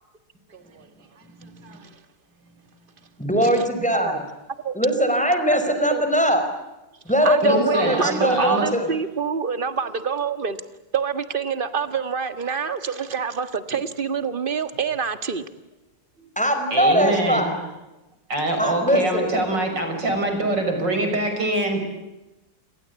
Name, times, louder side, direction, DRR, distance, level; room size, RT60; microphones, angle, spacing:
voice 1, 0.5-0.9 1.6-1.9 3.4-3.6 3.9-4.2 4.6-5.1 5.9-6.0 7.2-10.6 10.9-15.4, right 6 dB, 30° right, 1.7 m, -27 dB
voice 2, 3.2-4.2 4.7-6.4 7.0-8.9 16.4-17.5 18.6-19.3, equal, 5° left, 4.9 m, -21 dB
voice 3, 7.4-8.7 16.7-17.5 18.3-21.8, right 2 dB, 75° right, 6.8 m, -24 dB
30.0 x 22.5 x 8.3 m
omnidirectional pair, 1.9 m